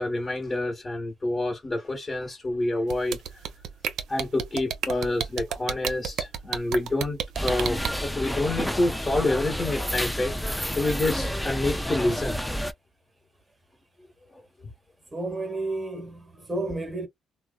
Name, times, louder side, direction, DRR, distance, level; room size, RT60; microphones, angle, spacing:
voice 1, 0.0-3.2 4.1-12.4 14.3-14.4, left 2 dB, 30° left, 1.0 m, -28 dB
sound 1, 2.9-7.9, right 9 dB, 80° right, 0.4 m, -29 dB
sound 2, 7.4-12.7, equal, 5° left, 0.4 m, -30 dB
voice 2, 15.1-17.1, right 2 dB, 20° right, 0.9 m, -31 dB
3.1 x 2.0 x 2.2 m
cardioid pair, 90°, 0 cm